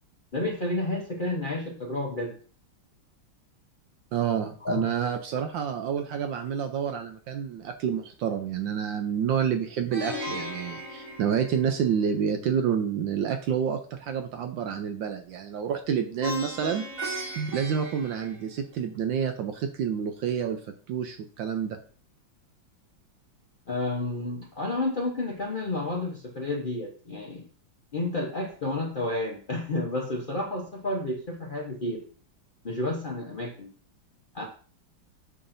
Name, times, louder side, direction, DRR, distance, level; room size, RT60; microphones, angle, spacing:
voice 1, 0.3-2.4 4.6-4.8 23.7-27.5 27.9-32.0 32.6-33.7 34.3-34.4, left 2 dB, 75° left, -2 dB, 0.4 m, -30 dB
voice 2, 4.1-16.8 17.4-20.6 20.9-21.8, right 8 dB, 70° right, 6 dB, 1.2 m, -28 dB
Plucked string instrument, 9.9-12.1 16.2-18.8, equal, 35° right, 3.3 m, -37 dB
6.7 x 5.6 x 2.6 m, 0.43 s
omnidirectional pair, 2.3 m